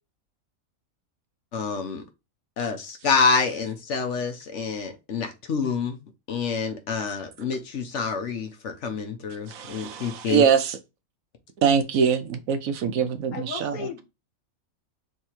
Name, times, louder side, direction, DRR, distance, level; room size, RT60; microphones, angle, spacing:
voice 1, 1.5-2.0 2.6-6.0 6.3-10.4, left 5 dB, 60° left, 1.1 m, -27 dB
voice 2, 9.5-10.8 11.6-13.9, right 7 dB, 70° right, 1.1 m, -23 dB
voice 3, 13.3-14.0, left 6 dB, 80° left, 1.4 m, -35 dB
3.6 x 3.2 x 4.3 m
omnidirectional pair, 1.5 m